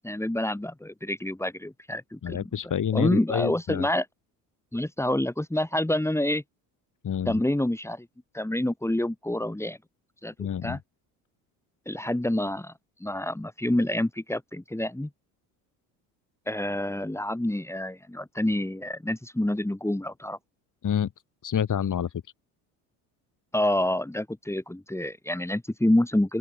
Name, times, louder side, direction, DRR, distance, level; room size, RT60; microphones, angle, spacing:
voice 1, 0.0-2.4 2.9-4.1 4.7-6.4 7.3-8.1 8.3-9.8 10.2-10.3 10.6-10.8 11.9-12.7 13.0-15.1 16.5-20.4 23.5-26.4, left 1 dB, 5° left, 5.4 m, -27 dB
voice 2, 2.2-3.9 7.0-7.4 10.4-10.8 20.8-21.1 21.4-22.1, left 8 dB, 45° left, 6.0 m, -28 dB
open air
supercardioid pair, 80°, 43 cm